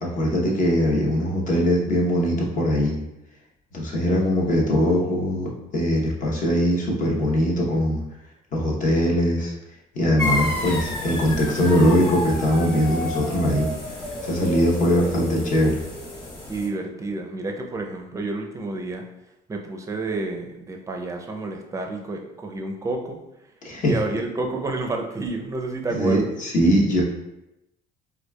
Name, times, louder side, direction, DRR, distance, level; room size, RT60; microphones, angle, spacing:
voice 1, 0.0-3.0 3.7-8.0 8.5-9.5 9.9-13.7 14.2-15.8 23.6-23.9 25.9-27.0, equal, 50° left, -3 dB, 0.9 m, -21 dB
sound 1, 10.2-16.7, left 2 dB, 25° left, 1.4 m, -30 dB
voice 2, 16.5-19.0 19.5-23.2 23.8-26.3, right 2 dB, 20° right, 3 dB, 0.5 m, -29 dB
4.4 x 2.4 x 2.2 m, 0.90 s
cardioid pair, 110°, 17 cm